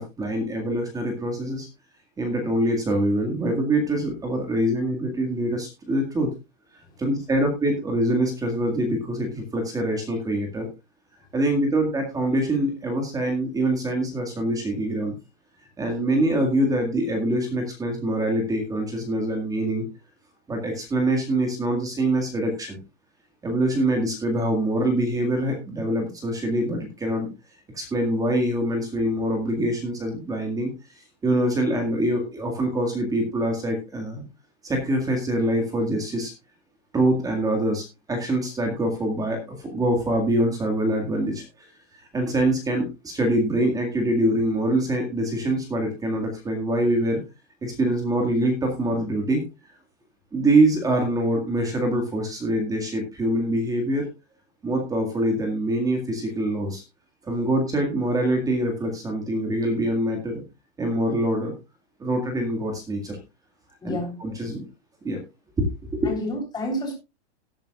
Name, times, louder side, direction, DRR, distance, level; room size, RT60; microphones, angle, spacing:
voice 1, 0.0-1.7 2.2-6.3 7.0-10.7 11.3-15.1 15.8-19.8 20.5-22.8 23.4-27.3 27.7-30.7 31.2-34.2 34.6-36.3 36.9-41.7 41.9-47.2 47.6-49.4 50.3-54.1 54.6-56.8 57.2-60.4 60.8-61.5 62.0-63.2 63.8-64.6 65.0-65.2 65.6-65.7 65.9-66.1, right 1 dB, 10° right, 3 dB, 1.9 m, -24 dB
voice 2, 63.8-64.2 66.1-66.9, equal, 10° left, 0 dB, 3.7 m, -29 dB
17.5 x 8.9 x 2.4 m, 0.26 s
supercardioid pair, 160°, 34 cm